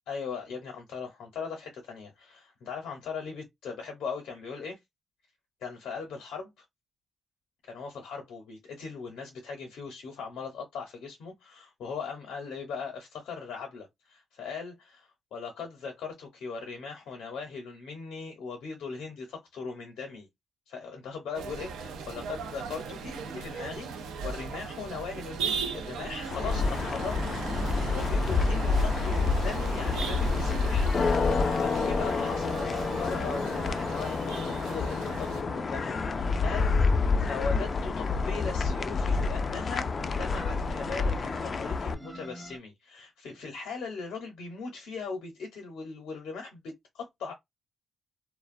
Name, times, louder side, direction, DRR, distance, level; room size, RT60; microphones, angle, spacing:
voice 1, 0.1-4.8 5.6-6.5 7.7-20.3 20.7-27.3 27.6-30.9 31.3-47.3, left 5 dB, 80° left, 0.7 m, -39 dB
sound 1, 21.3-35.4, right 5 dB, 85° right, 0.5 m, -37 dB
sound 2, 26.3-41.9, left 4 dB, 50° left, 0.3 m, -28 dB
sound 3, 32.0-42.6, right 1 dB, 10° right, 0.5 m, -45 dB
2.4 x 2.1 x 2.5 m
supercardioid pair, 50°, 0 cm